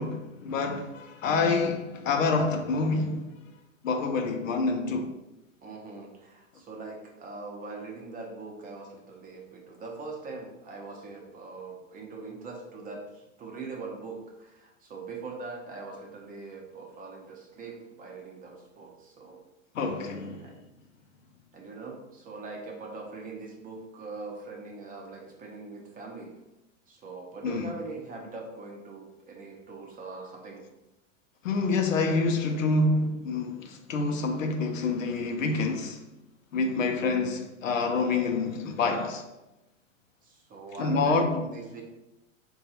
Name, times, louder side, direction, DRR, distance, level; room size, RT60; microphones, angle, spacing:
voice 1, 0.0-3.4 3.8-5.2 19.7-20.5 27.4-27.7 31.4-36.0 36.5-39.2 40.8-41.4, left 3 dB, 90° left, 0.6 m, -27 dB
voice 2, 5.6-19.4 20.4-20.6 21.5-26.3 26.9-30.7 36.7-37.0 40.2-41.8, right 3 dB, 20° right, 0.6 m, -42 dB
3.7 x 2.3 x 2.8 m
hypercardioid pair, 115°, 38 cm